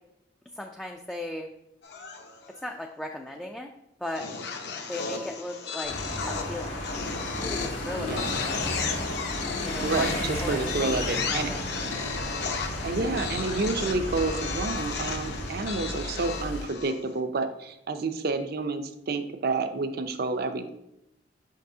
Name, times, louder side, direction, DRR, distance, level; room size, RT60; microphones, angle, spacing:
voice 1, 0.6-1.5 2.6-3.7 4.0-4.2 4.9-5.9 6.3-6.7 7.4-8.2 9.6-11.7, left 1 dB, 5° left, 1 dB, 0.3 m, -36 dB
sound 1, 1.8-2.6 4.2-17.1, left 5 dB, 60° left, 0.8 m, -34 dB
sound 2, 5.8-16.7, left 1 dB, 85° left, 1.5 m, -34 dB
voice 2, 9.8-11.5 12.8-20.7, right 3 dB, 55° right, 8 dB, 0.5 m, -29 dB
6.5 x 5.5 x 2.7 m, 0.84 s
head